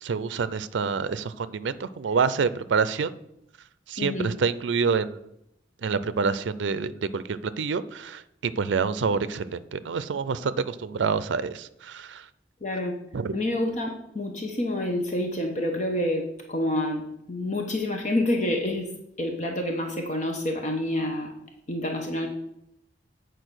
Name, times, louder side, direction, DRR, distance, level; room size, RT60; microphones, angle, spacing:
voice 1, 0.0-3.1 3.9-5.3 5.8-12.2 13.1-13.3, right 5 dB, 90° right, 15 dB, 0.4 m, -27 dB
voice 2, 4.0-4.3 12.6-13.0 13.3-18.9 19.2-21.3 21.7-22.3, left 1 dB, 40° left, 2 dB, 1.0 m, -28 dB
8.8 x 4.6 x 6.2 m, 0.80 s
head